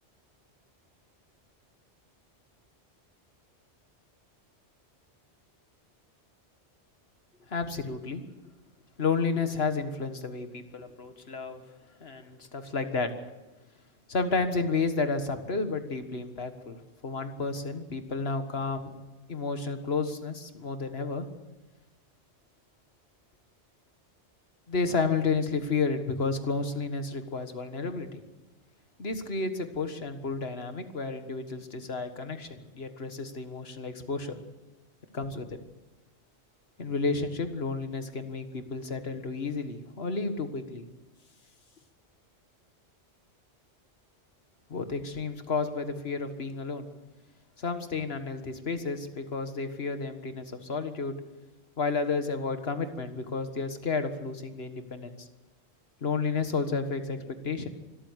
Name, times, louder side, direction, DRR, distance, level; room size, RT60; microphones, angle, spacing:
voice 1, 7.4-8.2 9.0-11.6 12.0-13.1 14.1-18.9 19.3-21.3 24.7-28.2 29.0-34.4 35.1-35.6 36.8-40.9 44.7-46.9 47.6-51.2 51.8-55.3 56.0-57.7, left 4 dB, 60° left, 8 dB, 1.9 m, -31 dB
25.0 x 13.5 x 8.2 m, 1.1 s
omnidirectional pair, 1.2 m